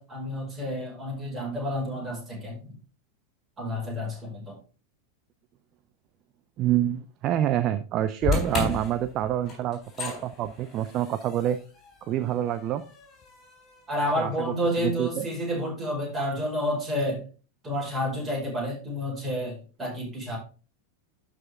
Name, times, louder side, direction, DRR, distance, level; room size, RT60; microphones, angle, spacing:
voice 1, 0.0-2.7 3.6-4.6 13.9-17.2 17.6-20.4, equal, 15° right, -3 dB, 5.4 m, -30 dB
voice 2, 6.6-11.6 12.1-12.8 14.2-15.3, right 11 dB, 35° right, 12 dB, 0.5 m, -27 dB
sound 1, 8.2-14.5, left 5 dB, 25° left, 3.9 m, -34 dB
12.0 x 5.0 x 3.6 m, 0.37 s
figure-of-eight pair, 90°, 0 cm